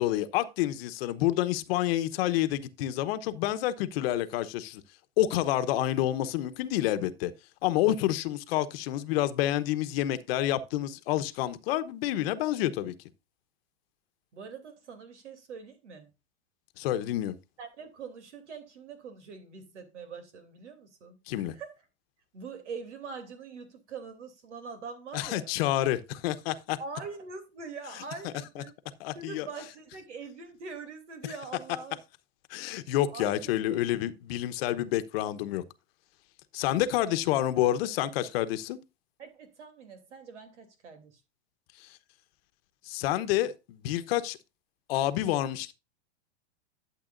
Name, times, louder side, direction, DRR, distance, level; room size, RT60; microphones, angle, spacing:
voice 1, 0.0-4.8 5.2-7.3 7.6-12.9 16.8-17.3 21.3-21.5 25.1-26.8 28.6-28.7 29.0-29.5 32.5-35.6 36.5-38.8 41.8-41.9 42.8-44.4 44.9-45.7, left 13 dB, 60° left, 1.1 m, -28 dB
voice 2, 14.3-16.1 17.6-21.7 22.3-25.5 26.8-28.7 29.1-32.0 33.1-33.8 37.0-37.2 39.2-41.2, right 5 dB, 90° right, 3.0 m, -43 dB
12.0 x 7.6 x 2.6 m
hypercardioid pair, 130°, 34 cm